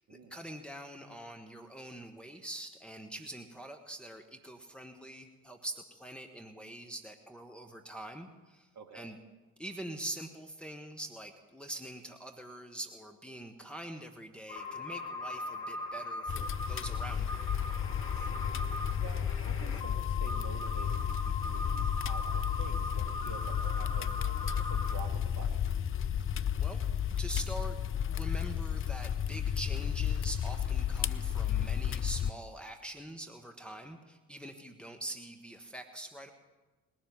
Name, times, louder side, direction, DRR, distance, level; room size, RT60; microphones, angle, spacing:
voice 1, 0.0-9.2 9.6-17.5 26.3-26.8 27.2-27.8 28.1-36.3, right 1 dB, ahead, 3 dB, 1.5 m, -44 dB
voice 2, 8.7-9.1 18.0-18.5 18.8-25.6, right 5 dB, 40° right, 5 dB, 2.4 m, -49 dB
sound 1, 14.5-24.9, left 2 dB, 50° left, 2.1 m, -40 dB
sound 2, 16.3-32.3, left 9 dB, 30° left, 0.5 m, -33 dB
19.5 x 7.7 x 9.5 m, 1.2 s
figure-of-eight pair, 50°, 43 cm